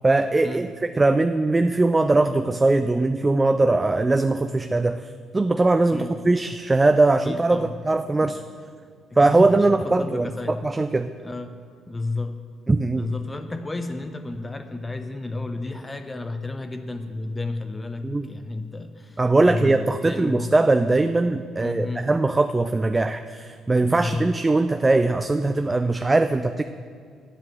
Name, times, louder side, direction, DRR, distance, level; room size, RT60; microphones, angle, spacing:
voice 1, 0.0-0.7 1.0-8.4 9.2-11.1 12.7-13.1 18.0-18.3 19.2-26.6, right 2 dB, 20° right, 8 dB, 0.4 m, -20 dB
voice 2, 7.2-7.7 8.2-8.3 9.1-10.6 11.2-11.6 11.9-12.4 12.9-20.4 21.6-22.1 23.8-24.3, left 2 dB, 20° left, 7 dB, 0.9 m, -32 dB
10.0 x 7.5 x 7.9 m, 2.1 s
figure-of-eight pair, 45°, 0 cm